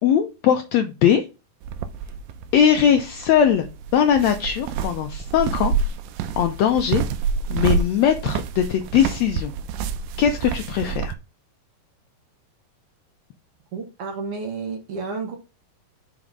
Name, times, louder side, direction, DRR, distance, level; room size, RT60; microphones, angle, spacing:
voice 1, 0.0-1.2 2.5-5.7 6.4-7.0 7.5-9.5 10.2-11.1, left 8 dB, 85° left, 6 dB, 1.5 m, -20 dB
sound 1, 1.6-11.1, right 6 dB, 90° right, 2.3 m, -28 dB
voice 2, 13.7-15.4, right 4 dB, 60° right, 4 dB, 1.7 m, -31 dB
6.1 x 4.3 x 5.2 m, 0.29 s
omnidirectional pair, 3.9 m